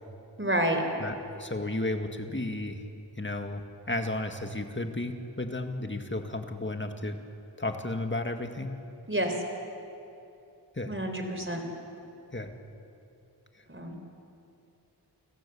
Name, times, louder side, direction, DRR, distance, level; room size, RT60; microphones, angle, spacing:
voice 1, 0.4-0.8 9.1-9.4 10.9-11.6 13.7-13.9, right 1 dB, 30° right, 4 dB, 4.0 m, -29 dB
voice 2, 1.0-2.8 3.2-7.2 7.6-8.8 10.8-10.9 12.3-12.5, left 2 dB, 25° left, 5 dB, 2.0 m, -33 dB
29.5 x 16.5 x 7.1 m, 2.7 s
wide cardioid pair, 45°, 42 cm